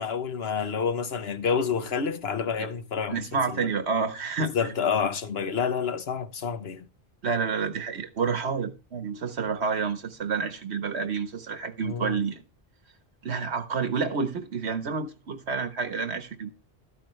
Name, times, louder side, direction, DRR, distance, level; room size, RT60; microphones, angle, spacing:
voice 1, 0.0-3.3 3.5-3.6 4.4-6.9 11.9-12.2, left 6 dB, 70° left, 1.3 m, -28 dB
voice 2, 3.1-4.7 7.2-12.4 13.2-16.5, right 5 dB, 85° right, 1.6 m, -29 dB
13.0 x 9.8 x 3.2 m
omnidirectional pair, 1.1 m